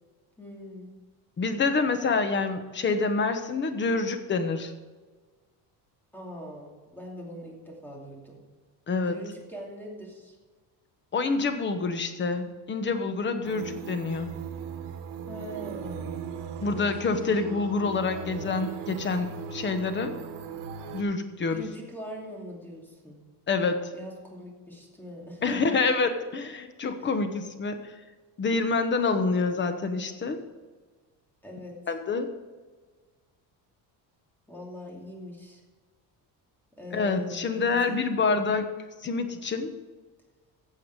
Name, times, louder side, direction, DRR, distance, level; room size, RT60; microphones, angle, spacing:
voice 1, 0.4-0.9 6.1-8.4 9.1-10.3 15.3-16.2 16.6-16.9 21.5-23.2 23.9-25.7 31.4-31.8 34.5-35.6 36.8-38.5, equal, 5° left, -2 dB, 2.7 m, -42 dB
voice 2, 1.4-4.7 8.9-9.1 11.1-14.3 16.6-20.1 20.9-21.6 23.5-23.9 25.4-27.8 28.4-30.4 31.9-32.3 36.9-38.7 39.0-39.7, left 4 dB, 25° left, 8 dB, 1.1 m, -27 dB
sound 1, 13.4-21.0, right 7 dB, 90° right, 1.6 m, -38 dB
15.5 x 7.0 x 4.8 m, 1.4 s
cardioid pair, 160°, 40 cm